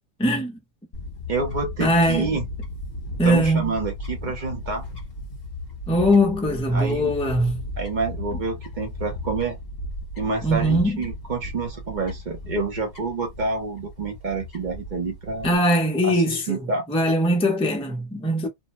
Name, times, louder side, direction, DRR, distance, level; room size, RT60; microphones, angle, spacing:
voice 1, 0.2-0.6 1.8-2.3 3.2-3.7 5.9-7.6 10.4-11.0 15.4-18.5, equal, 5° left, 0.4 m, -21 dB
Fowl / Bird, 0.9-15.6, left 1 dB, 35° left, 1.1 m, -35 dB
voice 2, 1.3-2.4 3.2-4.9 6.7-7.1 7.8-9.6 10.2-15.5 16.0-16.8, right 4 dB, 45° right, 0.6 m, -28 dB
2.7 x 2.1 x 2.9 m
omnidirectional pair, 1.4 m